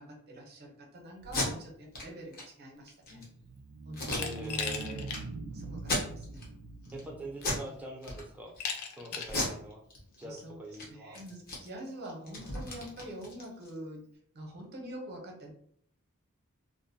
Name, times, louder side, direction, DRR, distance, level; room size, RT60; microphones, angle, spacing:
voice 1, 0.0-3.2 3.8-4.3 5.5-6.5 6.8-7.1 9.1-9.6 10.2-10.6 10.9-14.1 14.3-15.5, right 1 dB, 50° right, 1 dB, 0.7 m, -45 dB
Packing tape duct tape, 1.2-1.5 1.9-2.0 2.3-2.4 2.9-3.2 3.9-4.7 5.1-5.2 5.8-6.5 6.8-7.1 7.4-7.7 8.0-8.6 9.2-10.4 10.7-10.9 11.1-13.8, left 2 dB, 45° left, 0.8 m, -35 dB
sound 1, 3.3-7.8, right 3 dB, 75° right, 0.3 m, -43 dB
Glass, 4.1-5.2 5.6-5.7 6.8-6.9 7.4-7.8 8.6-9.4, left 6 dB, 90° left, 0.4 m, -37 dB
voice 2, 4.1-5.1 6.9-8.5 8.9-9.8 10.2-11.2, right 1 dB, 5° right, -2 dB, 0.5 m, -43 dB
2.5 x 2.1 x 2.6 m, 0.64 s
head